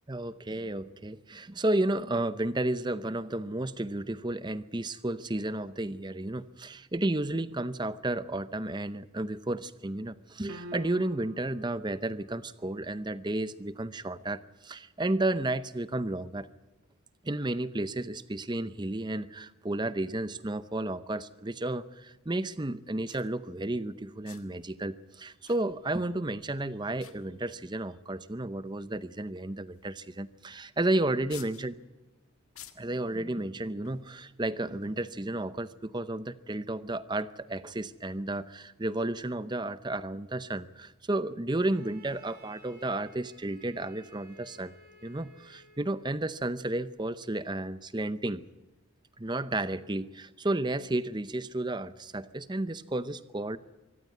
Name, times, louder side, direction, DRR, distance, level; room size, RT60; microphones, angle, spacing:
voice 1, 0.1-16.5 17.2-31.7 32.8-44.7 45.0-48.4 49.2-53.6, right 2 dB, 20° right, 14 dB, 0.7 m, -32 dB
sound 1, 10.5-11.5, equal, 80° right, 1.4 m, -44 dB
sound 2, 23.1-23.3 24.2-24.6 25.4-26.1 26.4-26.6 27.0-27.7 28.4-28.5 29.7-30.0 30.3-30.4 31.3-31.7 32.5-33.0 33.8-34.1, left 12 dB, 80° left, 1.7 m, -51 dB
Bowed string instrument, 41.5-46.1, right 2 dB, 45° right, 4.9 m, -56 dB
24.0 x 15.0 x 9.5 m, 1.1 s
head